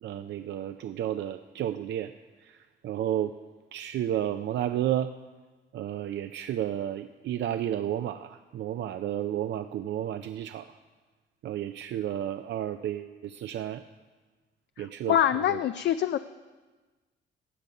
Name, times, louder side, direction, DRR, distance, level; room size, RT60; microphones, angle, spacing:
voice 1, 0.0-2.1 2.4-3.3 3.7-5.1 5.7-10.7 11.4-13.8 14.8-15.2 15.5-15.6, right 11 dB, 65° right, 9 dB, 0.5 m, -32 dB
voice 2, 14.8-16.2, left 10 dB, 60° left, 10 dB, 0.4 m, -25 dB
15.5 x 9.1 x 5.4 m, 1.3 s
cardioid pair, 90°, 20 cm